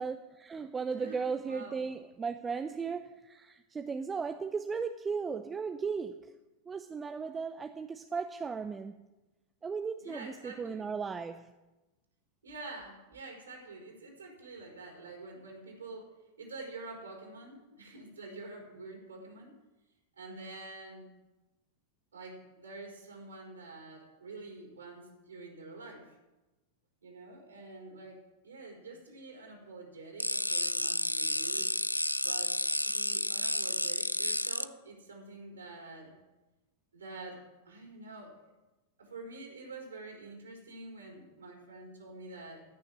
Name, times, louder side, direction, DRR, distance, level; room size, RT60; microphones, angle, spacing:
voice 1, 0.0-6.4 6.7-9.1 9.6-11.5, right 5 dB, 15° right, 0.6 m, -36 dB
voice 2, 0.9-1.9 10.0-10.9 12.4-16.1 16.4-19.5 20.2-21.1 22.1-26.2 27.0-31.7 32.2-32.5 32.8-36.1 36.9-38.5 39.0-42.6, right 3 dB, 70° right, 4.4 m, -47 dB
sound 1, 30.2-34.6, left 1 dB, 85° left, 0.4 m, -31 dB
15.5 x 6.6 x 10.0 m
figure-of-eight pair, 90°, 0 cm